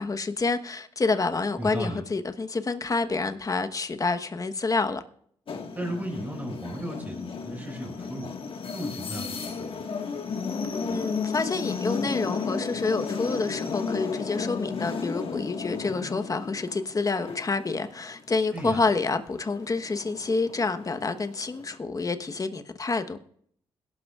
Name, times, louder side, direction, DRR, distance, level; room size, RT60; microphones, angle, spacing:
voice 1, 0.0-5.0 10.9-23.2, left 3 dB, 35° left, 1.1 m, -28 dB
voice 2, 1.6-2.0 5.8-8.3 8.7-9.8 18.5-18.8, right 1 dB, 15° right, 5.4 m, -35 dB
sound 1, 5.5-18.2 18.6-21.8, left 5 dB, 60° left, 1.6 m, -34 dB
21.5 x 12.0 x 2.4 m
cardioid pair, 80°, 11 cm